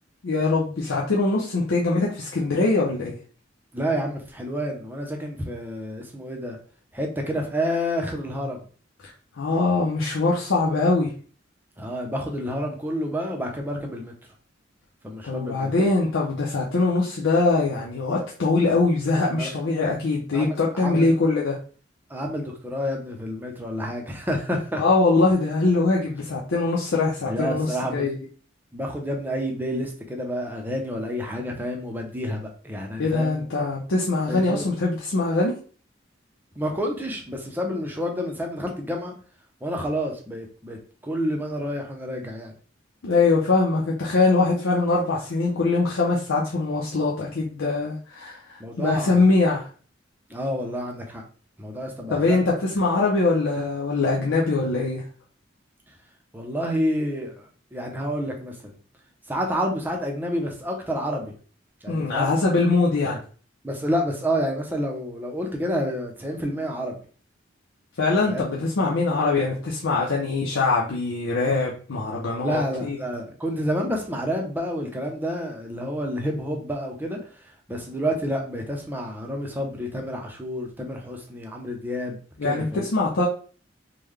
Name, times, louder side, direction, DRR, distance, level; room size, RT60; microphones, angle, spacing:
voice 1, 0.2-3.2 9.0-9.1 9.4-11.1 15.2-21.6 24.8-28.2 33.0-35.6 43.0-49.7 52.1-55.0 61.9-63.2 68.0-73.0 82.4-83.2, left 3 dB, 90° left, -4 dB, 0.6 m, -22 dB
voice 2, 3.7-6.6 6.9-8.6 11.8-14.1 15.0-15.7 19.4-19.5 20.3-21.1 22.1-24.8 27.3-28.1 28.7-33.4 34.3-34.7 36.6-39.1 39.6-40.8 41.0-42.5 48.6-49.3 50.3-51.2 51.6-52.4 56.3-58.8 59.3-61.3 61.8-62.3 63.6-67.0 68.3-68.4 72.4-77.4 77.7-82.9, equal, 10° right, 1 dB, 0.6 m, -29 dB
3.7 x 2.2 x 3.2 m, 0.41 s
head